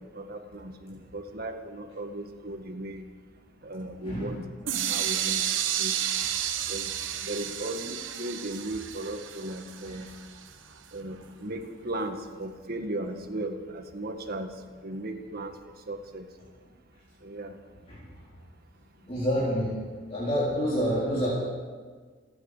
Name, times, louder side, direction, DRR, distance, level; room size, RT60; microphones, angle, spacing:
voice 1, 0.1-3.0 3.6-4.4 4.7-5.4 5.8-5.9 6.7-6.9 7.2-10.1 10.9-14.5 14.8-16.3 17.2-17.6, right 1 dB, 55° right, 5 dB, 1.8 m, -36 dB
sound 1, 4.7-10.5, right 10 dB, 85° right, 1.2 m, -31 dB
voice 2, 19.0-19.8 20.1-21.3, equal, 35° left, -8 dB, 4.1 m, -27 dB
28.5 x 10.0 x 5.1 m, 1.5 s
head